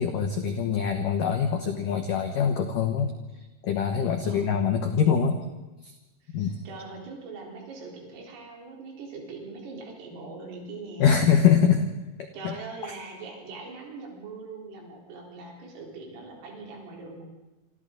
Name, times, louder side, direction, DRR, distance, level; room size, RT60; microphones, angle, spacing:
voice 1, 0.0-3.1 3.6-5.4 5.8-5.9 6.3-6.6 11.0-11.9 12.4-12.5, left 7 dB, 90° left, 5 dB, 1.8 m, -23 dB
voice 2, 4.2-4.8 6.2-11.2 12.3-17.3, right 3 dB, 90° right, -2 dB, 6.8 m, -41 dB
27.0 x 26.5 x 4.0 m, 1.1 s
omnidirectional pair, 5.8 m